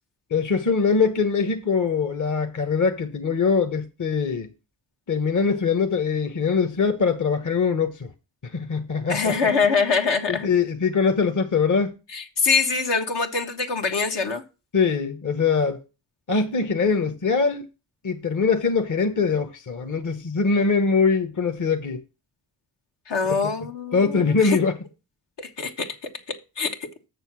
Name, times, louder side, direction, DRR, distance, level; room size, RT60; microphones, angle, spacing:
voice 1, 0.3-4.5 5.1-8.1 8.4-9.5 10.3-12.0 14.7-15.8 16.3-17.7 18.0-22.0 23.9-24.8, left 5 dB, 45° left, 1.1 m, -22 dB
voice 2, 9.1-10.5 12.1-14.4 23.1-24.6 25.4-27.1, left 5 dB, 70° left, 1.6 m, -24 dB
6.8 x 6.7 x 6.1 m
cardioid pair, 50°, 43 cm